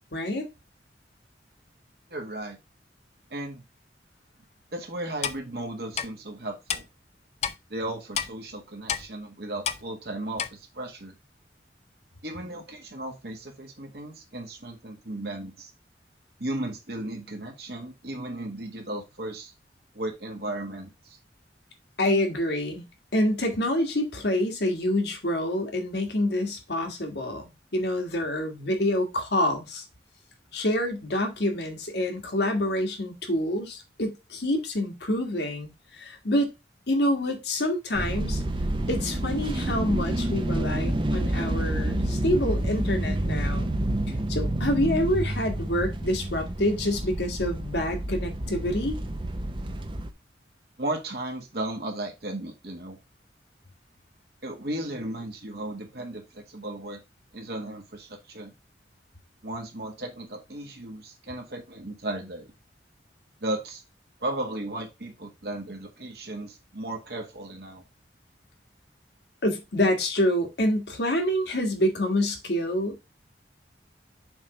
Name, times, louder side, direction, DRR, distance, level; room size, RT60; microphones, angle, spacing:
voice 1, 0.1-0.5 22.0-22.8 23.1-29.8 30.5-36.5 36.9-38.4 38.9-43.8 44.3-49.0 69.4-73.0, left 1 dB, 75° left, 1.7 m, -27 dB
voice 2, 2.1-2.6 3.3-3.6 4.7-6.9 7.7-11.1 12.2-15.7 16.4-19.5 19.9-21.2 50.8-53.0 54.4-57.0 57.3-58.5 59.4-62.5 63.4-63.8 64.2-67.8, right 1 dB, 65° right, 1.6 m, -35 dB
Clock, 5.2-5.4 6.0-6.1 6.7-6.8 7.4-7.6 8.2-8.3 8.9-9.1 9.7-9.8 10.4-10.5, left 8 dB, 35° left, 0.5 m, -28 dB
sound 1, 37.9-50.1, right 1 dB, 30° right, 0.6 m, -29 dB
7.0 x 3.4 x 4.9 m
head